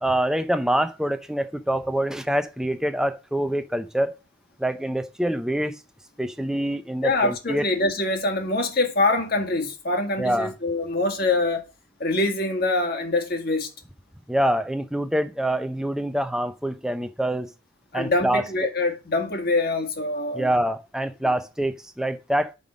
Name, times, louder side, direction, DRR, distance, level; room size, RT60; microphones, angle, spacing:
voice 1, 0.0-4.1 4.6-5.8 6.2-7.6 10.2-10.5 14.3-17.5 17.9-18.4 20.3-22.5, right 1 dB, 5° right, 0.6 m, -25 dB
voice 2, 7.0-11.7 12.0-13.7 17.9-20.5, left 2 dB, 50° left, 1.8 m, -24 dB
5.6 x 5.4 x 6.2 m
head